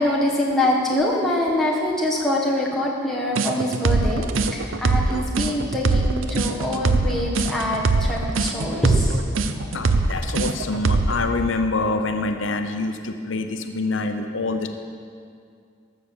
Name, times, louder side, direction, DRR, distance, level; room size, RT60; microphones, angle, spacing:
voice 1, 0.0-4.2 4.5-9.2 9.6-9.7 10.0-10.1, left 1 dB, ahead, -4 dB, 1.4 m, -24 dB
sound 1, 3.4-11.2, right 3 dB, 85° right, 0.7 m, -21 dB
voice 2, 9.7-14.7, left 3 dB, 75° left, 7 dB, 0.7 m, -26 dB
13.5 x 6.5 x 7.2 m, 2.2 s
head